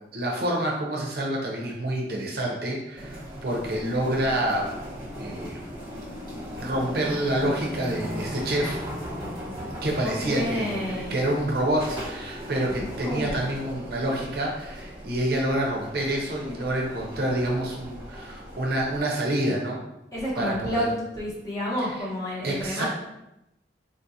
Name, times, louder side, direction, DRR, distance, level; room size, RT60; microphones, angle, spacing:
voice 1, 0.1-4.6 5.2-5.6 6.6-8.8 9.8-19.8 20.4-20.9 22.4-22.9, right 1 dB, 55° right, -1 dB, 0.6 m, -27 dB
sound 1, 3.0-19.0, equal, 30° right, 1.0 m, -37 dB
voice 2, 10.0-11.2 12.8-13.3 20.1-20.9 21.1-22.9, equal, 20° left, -7 dB, 0.9 m, -30 dB
3.7 x 2.4 x 2.7 m, 0.88 s
head